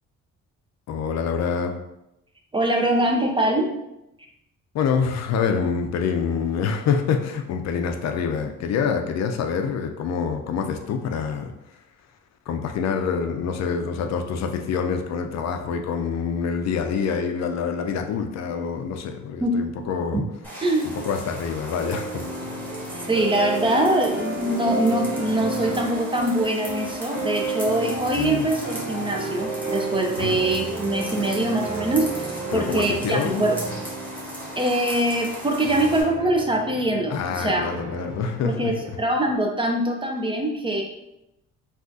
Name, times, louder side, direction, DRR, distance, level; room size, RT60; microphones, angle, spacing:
voice 1, 0.9-1.8 4.7-11.5 12.5-20.2 21.0-22.2 28.2-28.5 30.2-30.4 32.5-33.5 37.1-38.7, left 6 dB, 60° left, 5 dB, 0.4 m, -26 dB
voice 2, 2.5-3.7 19.4-19.6 20.6-21.0 22.9-33.6 34.6-37.7 38.4-40.8, right 1 dB, 15° right, 2 dB, 0.4 m, -23 dB
sound 1, 20.4-36.0, equal, 5° left, 1.3 m, -38 dB
sound 2, 21.8-39.4, right 2 dB, 70° right, 0.8 m, -32 dB
3.5 x 2.4 x 2.5 m, 0.88 s
cardioid pair, 90°, 30 cm